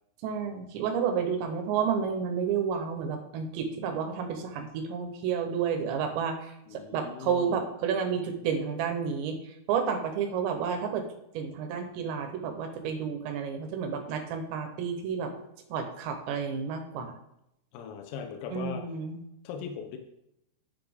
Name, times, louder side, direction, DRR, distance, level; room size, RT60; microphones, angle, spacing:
voice 1, 0.2-9.4 9.7-11.0 11.3-15.3 15.7-17.1 18.5-19.2, right 6 dB, 75° right, 5 dB, 2.8 m, -31 dB
voice 2, 6.7-7.7 17.7-18.9 19.5-20.0, left 7 dB, 85° left, 4 dB, 3.6 m, -39 dB
10.0 x 8.3 x 3.5 m, 0.81 s
omnidirectional pair, 5.9 m